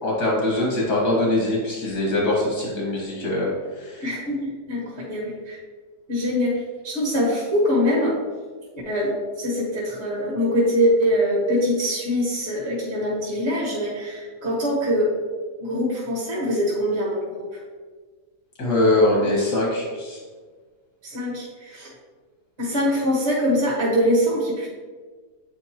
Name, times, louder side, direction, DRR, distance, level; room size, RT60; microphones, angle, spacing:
voice 1, 0.0-3.5 3.8-4.1 18.6-20.2, left 1 dB, 80° left, -3 dB, 2.2 m, -22 dB
voice 2, 4.0-5.6 6.1-8.2 8.8-15.2 15.6-17.6 19.2-19.3 21.0-21.9 22.6-24.7, equal, 45° right, -5 dB, 1.7 m, -23 dB
8.2 x 5.1 x 2.9 m, 1.4 s
omnidirectional pair, 1.7 m